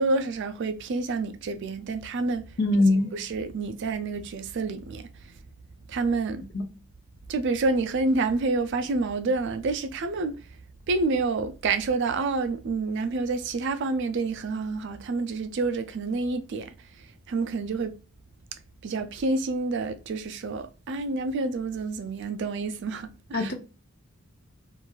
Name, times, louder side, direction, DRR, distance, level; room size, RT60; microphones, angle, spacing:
voice 1, 0.0-2.6 2.9-5.4 5.9-6.4 7.3-10.5 10.9-17.9 18.8-23.5, right 3 dB, 50° right, 0.3 m, -28 dB
voice 2, 2.6-3.1 6.5-6.7 23.3-23.5, left 2 dB, 45° left, 0.5 m, -22 dB
2.9 x 2.5 x 2.3 m
head